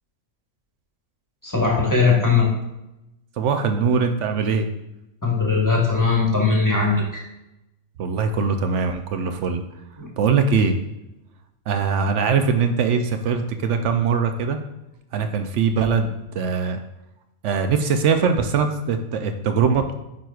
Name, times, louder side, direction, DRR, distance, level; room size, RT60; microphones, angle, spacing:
voice 1, 1.4-2.5 5.2-7.2 10.0-10.1, left 4 dB, 15° left, -2 dB, 1.1 m, -19 dB
voice 2, 3.4-4.7 8.0-9.6 10.2-10.7 11.7-14.6 15.1-16.8 17.4-19.9, right 5 dB, 65° right, 7 dB, 0.8 m, -21 dB
9.0 x 4.6 x 2.4 m, 0.93 s
omnidirectional pair, 1.4 m